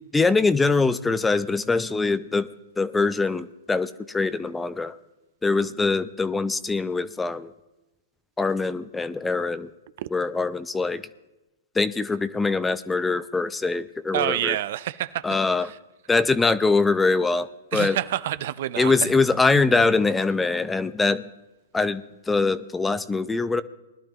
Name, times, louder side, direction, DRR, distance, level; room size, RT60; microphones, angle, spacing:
voice 1, 0.1-2.5 2.8-5.0 5.4-7.5 8.4-9.7 10.1-11.0 11.8-14.6 15.2-15.7 16.1-18.0 18.8-21.2 21.7-23.6, left 3 dB, 10° left, 15 dB, 0.5 m, -23 dB
voice 2, 14.1-15.3 17.7-19.1, right 12 dB, 60° right, 16 dB, 0.5 m, -27 dB
20.5 x 11.5 x 3.0 m, 1.0 s
hypercardioid pair, 130°, 0 cm